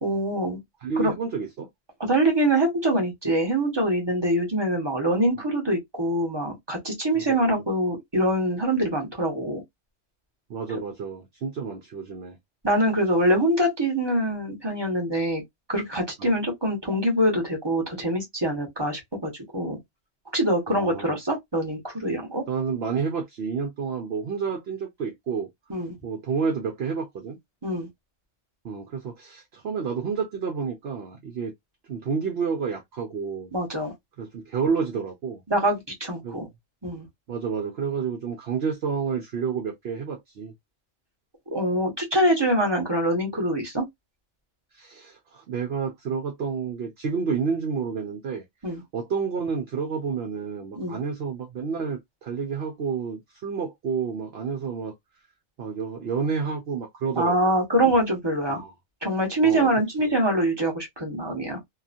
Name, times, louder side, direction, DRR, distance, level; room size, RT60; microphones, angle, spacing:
voice 1, 0.0-0.6 1.0-1.1 2.1-9.6 12.6-15.4 15.7-19.8 20.3-22.4 25.7-25.9 27.6-27.9 33.5-33.9 35.5-36.5 36.8-37.1 41.5-43.8 48.6-48.8 50.7-51.0 57.2-58.6 59.0-61.6, right 1 dB, 20° right, 1.1 m, -24 dB
voice 2, 0.8-1.7 7.1-7.5 10.5-12.4 16.2-16.3 20.7-21.2 22.5-25.5 26.0-27.4 28.6-31.5 31.9-33.5 34.2-35.4 36.2-36.4 37.3-40.5 44.7-54.9 55.6-57.6 58.5-58.7 59.4-59.7 60.0-60.1, right 6 dB, 60° right, 0.8 m, -30 dB
2.9 x 2.4 x 2.5 m
omnidirectional pair, 1.3 m